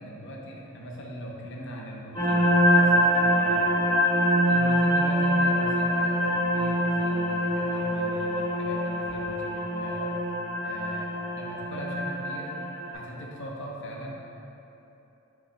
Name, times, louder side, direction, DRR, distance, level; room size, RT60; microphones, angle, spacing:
voice 1, 0.0-3.7 4.5-10.1 10.6-12.5 12.9-14.3, equal, 65° left, -2 dB, 0.9 m, -40 dB
sound 1, 2.1-12.9, equal, 25° left, 1.5 m, -24 dB
7.8 x 5.8 x 2.2 m, 3.0 s
head